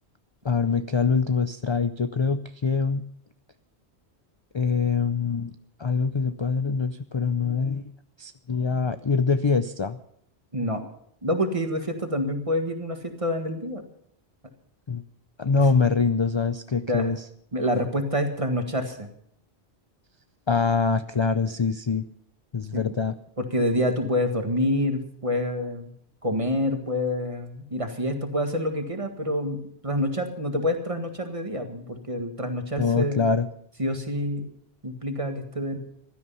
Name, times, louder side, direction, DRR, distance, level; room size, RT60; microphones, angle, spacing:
voice 1, 0.4-3.0 4.5-5.5 5.8-7.9 8.2-10.0 14.9-15.0 15.4-17.2 20.5-22.1 22.5-23.2 32.8-33.5, left 5 dB, 35° left, 10 dB, 0.5 m, -24 dB
voice 2, 11.2-13.9 16.9-17.1 17.5-19.1 22.7-23.0 23.4-25.9 26.2-33.3 33.8-34.5 34.8-35.8, left 1 dB, 30° right, 6 dB, 1.8 m, -27 dB
16.0 x 12.5 x 5.6 m, 0.68 s
omnidirectional pair, 1.1 m